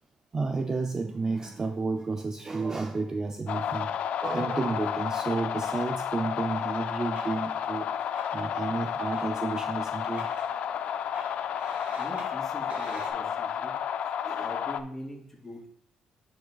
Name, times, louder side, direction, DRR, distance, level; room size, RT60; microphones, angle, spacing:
voice 1, 0.3-3.9 4.2-7.9 8.3-10.3 14.2-14.5, right 3 dB, 25° right, 6 dB, 0.4 m, -31 dB
sound 1, 3.5-14.8, left 8 dB, 60° left, 0.3 m, -31 dB
sound 2, 6.6-13.1, right 1 dB, 60° right, 2.3 m, -46 dB
voice 2, 12.0-13.8 14.0-15.7, left 1 dB, 10° left, -5 dB, 2.9 m, -43 dB
10.0 x 4.9 x 2.3 m, 0.67 s
cardioid pair, 120°, 2 cm